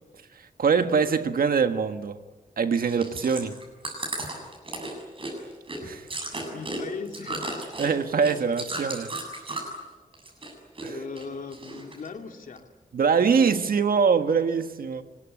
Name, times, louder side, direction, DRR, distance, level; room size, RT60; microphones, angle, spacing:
voice 1, 0.6-2.2 2.6-3.5 5.8-6.1 7.8-9.1 10.8-11.0 12.9-15.0, right 6 dB, 85° right, 1.6 m, -23 dB
Chewing mastication, 2.8-9.8 10.1-10.9 11.1-12.1 12.6-12.7, right 2 dB, 40° right, 7.4 m, -35 dB
voice 2, 6.5-7.5 10.8-12.7, left 5 dB, 65° left, 2.5 m, -38 dB
25.5 x 21.0 x 9.9 m
wide cardioid pair, 165°, 15 cm